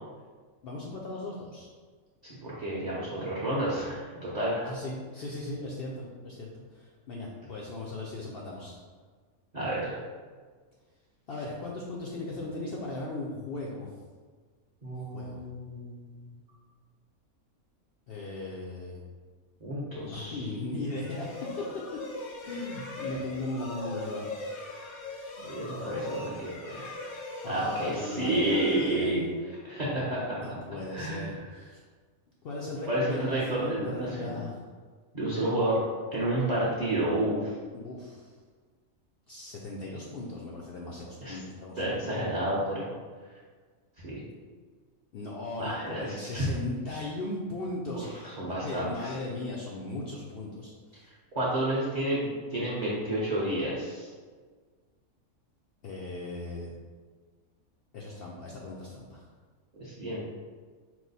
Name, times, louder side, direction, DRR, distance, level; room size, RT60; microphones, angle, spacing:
voice 1, 0.6-1.7 4.6-8.8 11.3-13.9 14.9-15.4 18.1-19.0 20.0-21.5 22.4-24.3 27.4-29.3 30.4-31.8 32.4-34.6 37.7-38.3 39.3-42.2 45.1-48.4 48.6-51.0 55.8-56.7 57.9-59.3, left 2 dB, 70° left, -4 dB, 0.5 m, -37 dB
voice 2, 2.2-4.7 9.5-10.0 14.8-16.3 19.6-20.4 25.4-26.9 27.4-29.2 29.6-30.4 30.9-31.3 32.8-33.9 34.2-34.4 35.1-35.8 36.1-37.5 41.2-41.4 41.8-42.9 44.0-44.2 45.6-46.5 47.9-49.1 51.3-54.1 59.8-60.2, right 1 dB, 40° right, -8 dB, 0.7 m, -30 dB
sound 1, 20.8-29.6, left 2 dB, 90° left, 1.2 m, -40 dB
4.6 x 2.1 x 4.0 m, 1.5 s
omnidirectional pair, 1.5 m